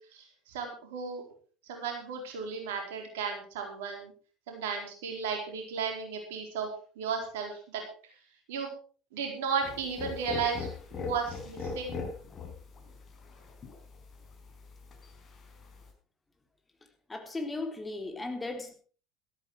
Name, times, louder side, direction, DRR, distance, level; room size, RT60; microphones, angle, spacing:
voice 1, 0.1-1.2 1.6-4.1 4.5-6.7 7.0-7.8 8.5-8.7 9.1-10.7 11.0-11.9, right 6 dB, 65° right, 3 dB, 4.4 m, -34 dB
sound 1, 9.6-15.9, left 4 dB, 35° left, 5.0 m, -41 dB
voice 2, 17.1-18.7, left 2 dB, 15° left, 5 dB, 3.7 m, -36 dB
13.5 x 13.5 x 4.8 m, 0.40 s
figure-of-eight pair, 70°, 0 cm